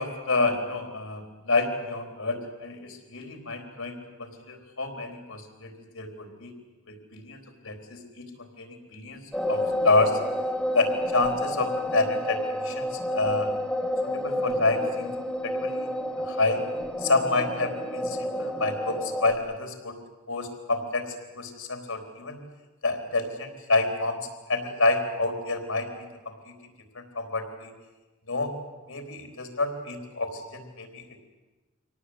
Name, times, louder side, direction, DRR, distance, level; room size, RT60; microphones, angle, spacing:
voice 1, 0.0-5.7 5.9-6.5 6.9-8.3 8.6-10.2 10.7-13.5 14.0-15.1 15.4-15.9 16.2-16.6 17.0-20.0 20.3-22.4 22.8-26.5 26.9-27.7 28.3-28.5 28.9-31.0, left 3 dB, 85° left, 4 dB, 4.0 m, -28 dB
sound 1, 9.3-19.3, left 1 dB, 5° left, 1.7 m, -30 dB
24.5 x 18.0 x 8.2 m, 1.1 s
head